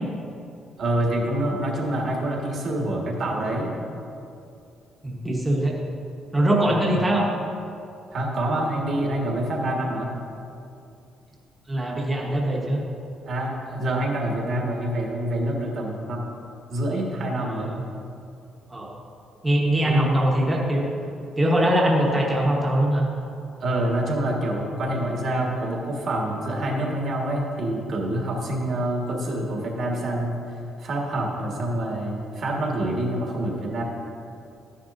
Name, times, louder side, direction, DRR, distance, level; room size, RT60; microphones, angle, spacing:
voice 1, 0.8-3.7 6.6-7.0 8.1-10.1 13.2-16.3 16.7-17.7 19.8-20.1 23.6-30.4 30.8-33.8, right 1 dB, 45° right, -1 dB, 1.6 m, -26 dB
voice 2, 5.0-5.8 6.3-7.3 11.7-12.8 17.4-17.8 18.7-18.9 19.4-20.9 21.4-23.0, right 1 dB, 10° right, -2 dB, 1.1 m, -22 dB
13.0 x 10.0 x 2.6 m, 2.6 s
cardioid pair, 175°, 0 cm